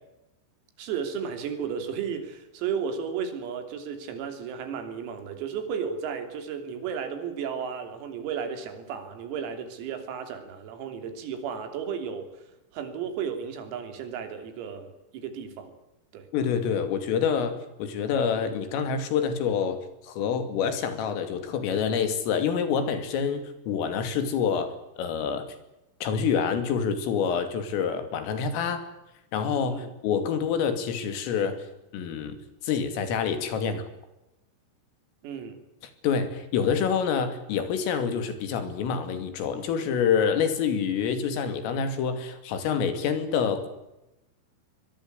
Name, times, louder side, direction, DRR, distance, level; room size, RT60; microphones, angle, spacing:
voice 1, 0.8-12.3 12.7-15.7 16.1-16.3 29.7-29.9 35.2-35.6, right 7 dB, 90° right, 7 dB, 5.9 m, -34 dB
voice 2, 16.3-25.5 26.0-28.8 29.3-31.6 31.9-32.4 32.6-33.9 36.0-43.7, left 6 dB, 75° left, 9 dB, 5.1 m, -27 dB
24.0 x 21.5 x 8.2 m, 0.94 s
omnidirectional pair, 6.0 m